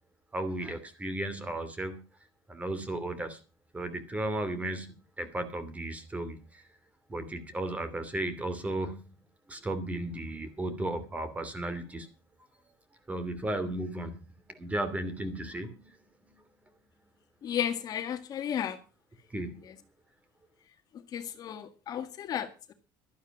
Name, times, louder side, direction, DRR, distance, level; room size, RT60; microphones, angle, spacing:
voice 1, 0.3-2.0 2.5-3.4 3.7-6.6 7.1-9.1 9.5-12.1 13.1-14.2 14.5-15.7 19.3-19.6, right 1 dB, 15° right, 2.9 m, -34 dB
voice 2, 17.4-18.8 21.1-22.7, left 9 dB, 45° left, 1.8 m, -33 dB
12.5 x 11.0 x 6.0 m
cardioid pair, 120°, 9 cm